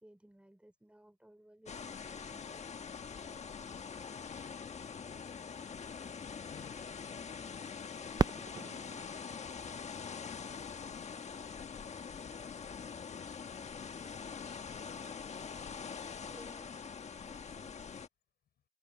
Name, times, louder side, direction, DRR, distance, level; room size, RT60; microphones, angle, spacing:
voice 1, 0.0-3.4 16.3-16.9 17.2-17.8, right 1 dB, 5° right, 4.5 m, -60 dB
sound 1, 1.7-18.1, left 6 dB, 40° left, 1.4 m, -44 dB
voice 2, 2.8-3.2 6.4-8.2 8.5-11.2 11.6-12.5 13.0-14.7 17.4-18.0, left 10 dB, 70° left, 5.8 m, -64 dB
Fireworks, 8.2-10.9 11.6-11.7 12.4-12.8 14.7-14.9, right 5 dB, 25° right, 0.5 m, -37 dB
cardioid pair, 85°, 17 cm